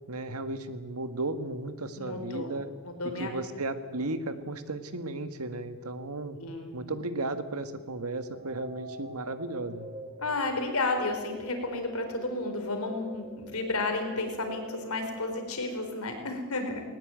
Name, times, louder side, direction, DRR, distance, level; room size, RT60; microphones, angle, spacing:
voice 1, 0.1-2.7 3.2-6.4 6.7-9.9, right 2 dB, 85° right, 10 dB, 1.7 m, -35 dB
voice 2, 2.0-2.5 2.8-3.3 6.4-6.7 10.2-16.8, left 2 dB, 85° left, 5 dB, 4.5 m, -32 dB
sound 1, 8.2-16.2, equal, 35° right, 7.8 m, -45 dB
20.5 x 19.0 x 8.9 m, 1.4 s
head